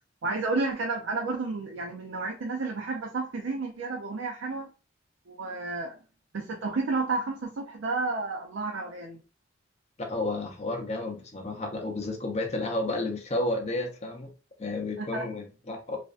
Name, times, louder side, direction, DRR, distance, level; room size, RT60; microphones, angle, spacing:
voice 1, 0.2-4.7 5.3-6.0 6.3-9.2 15.0-15.3, right 3 dB, 70° right, 0.5 m, -31 dB
voice 2, 10.0-14.3 14.6-16.0, left 2 dB, 35° left, 0.6 m, -31 dB
2.5 x 2.2 x 2.4 m
head